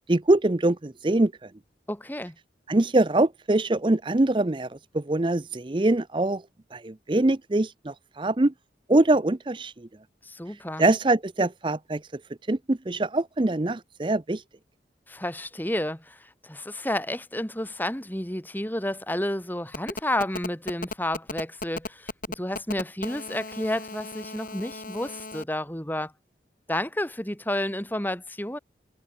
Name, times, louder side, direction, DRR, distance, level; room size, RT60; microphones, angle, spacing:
voice 1, 0.1-1.5 2.7-6.4 6.7-8.5 8.9-9.7 10.8-12.0 12.5-14.4, right 2 dB, 30° right, 0.6 m, -23 dB
voice 2, 1.9-2.4 10.2-10.8 15.1-26.1 26.7-28.6, left 1 dB, 10° left, 2.5 m, -31 dB
Telephone, 19.7-25.4, left 2 dB, 50° left, 5.8 m, -36 dB
head